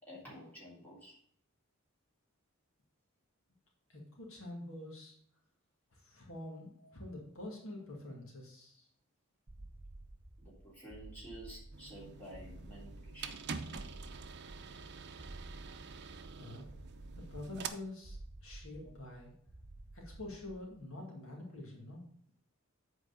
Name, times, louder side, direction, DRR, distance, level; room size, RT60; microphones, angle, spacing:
voice 1, 0.0-1.2 6.8-6.9 10.4-13.4, equal, 10° left, -6 dB, 3.5 m, -51 dB
voice 2, 3.9-5.2 5.9-8.9 16.3-16.6 17.1-19.3 19.9-22.1, left 2 dB, 70° left, -1 dB, 2.3 m, -47 dB
sound 1, 9.5-20.8, right 1 dB, 35° right, 1.0 m, -52 dB
sound 2, 11.7-17.7, right 5 dB, 55° right, 0.7 m, -46 dB
8.1 x 4.6 x 6.7 m, 0.62 s
head